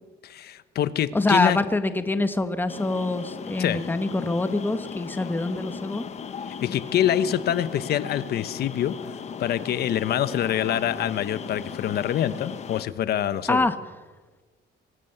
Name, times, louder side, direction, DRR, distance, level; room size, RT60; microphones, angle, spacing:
voice 1, 0.2-1.6 3.6-3.8 6.6-8.9 9.4-13.7, left 10 dB, 55° left, 13 dB, 1.1 m, -25 dB
voice 2, 1.1-6.1 13.5-13.7, left 2 dB, 10° left, 10 dB, 1.2 m, -25 dB
sound 1, 2.7-12.8, left 7 dB, 35° left, 1.2 m, -37 dB
24.0 x 17.0 x 8.0 m, 1.4 s
cardioid pair, 160°, 19 cm